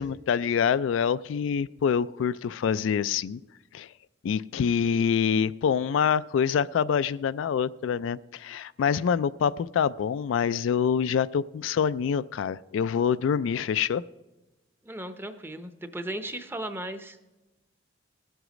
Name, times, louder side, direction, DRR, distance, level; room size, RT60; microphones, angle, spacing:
voice 1, 0.0-3.4 3.7-3.9 4.2-14.0, left 7 dB, 80° left, 16 dB, 0.3 m, -26 dB
voice 2, 14.8-17.2, right 1 dB, 10° right, 9 dB, 0.7 m, -36 dB
18.0 x 8.0 x 5.1 m, 1.1 s
head